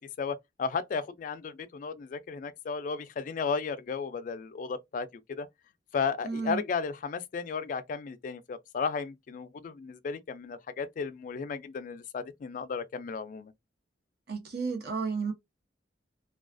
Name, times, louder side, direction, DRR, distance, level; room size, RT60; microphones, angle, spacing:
voice 1, 0.2-5.5 5.9-13.5, left 5 dB, 45° left, 0.3 m, -34 dB
voice 2, 6.2-6.6 14.3-15.3, right 5 dB, 60° right, 0.8 m, -32 dB
2.3 x 2.3 x 2.4 m
head